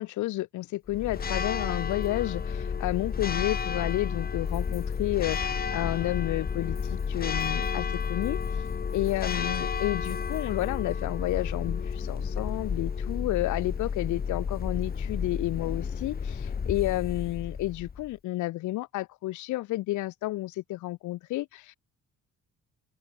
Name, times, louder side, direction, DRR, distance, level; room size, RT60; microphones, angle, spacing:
voice 1, 0.0-8.4 8.9-21.8, left 17 dB, 75° left, 0.6 m, -31 dB
Church bell, 0.9-18.1, left 6 dB, 30° left, 1.0 m, -31 dB
open air
cardioid pair, 90°, 30 cm